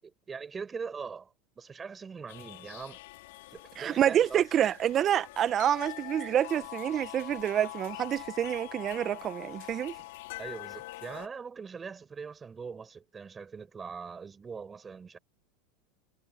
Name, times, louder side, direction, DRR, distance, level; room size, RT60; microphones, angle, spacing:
voice 1, 0.0-3.0 3.5-4.4 10.4-15.2, right 5 dB, 20° right, 5.5 m, -42 dB
sound 1, 2.3-11.3, left 19 dB, 75° left, 5.3 m, -44 dB
voice 2, 3.8-9.9, right 10 dB, 40° right, 1.3 m, -27 dB
hypercardioid pair, 105°, 0 cm